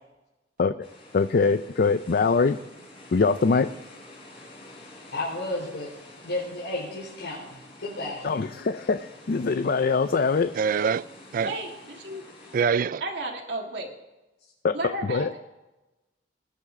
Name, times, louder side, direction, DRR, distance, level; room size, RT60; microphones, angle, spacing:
sound 1, 0.8-12.6, left 2 dB, 30° left, 4.2 m, -49 dB
voice 1, 1.1-2.6 3.1-3.7 8.2-10.5 14.6-14.8 15.0-15.3, left 4 dB, 55° left, 0.4 m, -23 dB
voice 2, 5.1-5.9 6.2-8.3, left 2 dB, 90° left, 4.2 m, -32 dB
voice 3, 10.5-11.0 11.3-11.6 12.5-13.0, right 6 dB, 50° right, 0.3 m, -24 dB
voice 4, 11.4-12.2 13.0-13.9 14.7-15.4, right 2 dB, 70° right, 1.8 m, -33 dB
20.0 x 10.0 x 3.7 m
head